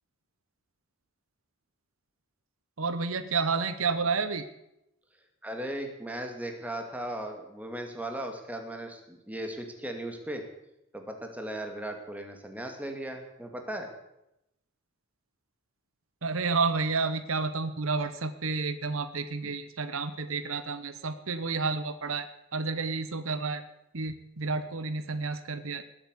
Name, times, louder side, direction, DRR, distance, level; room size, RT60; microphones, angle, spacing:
voice 1, 2.8-4.5 16.2-22.3 22.5-23.6 23.9-25.8, right 4 dB, 75° right, 12 dB, 1.0 m, -30 dB
voice 2, 5.4-10.4 10.9-13.9, right 1 dB, 5° right, 4 dB, 2.3 m, -37 dB
19.0 x 8.8 x 8.3 m, 0.86 s
head